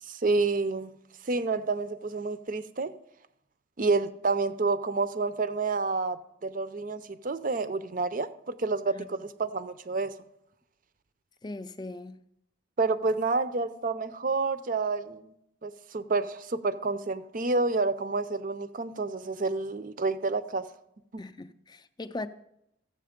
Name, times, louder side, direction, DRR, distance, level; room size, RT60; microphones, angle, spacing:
voice 1, 0.1-0.9 1.2-2.9 3.8-10.1 12.8-15.3 15.6-20.7 21.1-21.2, right 3 dB, 40° right, 0.5 m, -29 dB
voice 2, 11.4-12.2 21.2-22.3, left 2 dB, 20° left, 0.4 m, -39 dB
14.0 x 7.5 x 5.1 m
head